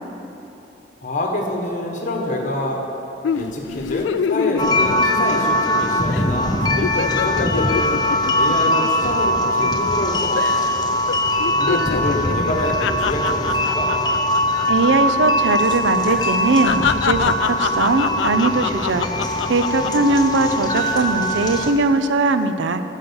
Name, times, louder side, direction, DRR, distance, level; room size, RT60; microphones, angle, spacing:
voice 1, 1.0-2.8 3.3-8.0 8.3-10.7 11.6-13.9, left 1 dB, 45° left, 1 dB, 1.4 m, -26 dB
sound 1, 3.2-5.8 6.1-6.3 6.6-10.0 10.4-10.8 11.1-15.2 15.4-15.6 16.1-20.1 20.6-21.1, left 7 dB, 75° left, 0.3 m, -26 dB
sound 2, 4.6-21.7, left 1 dB, 20° left, 0.7 m, -21 dB
voice 2, 14.7-19.1 19.5-22.8, right 3 dB, 80° right, 10 dB, 0.5 m, -20 dB
8.9 x 7.4 x 7.0 m, 3.0 s
head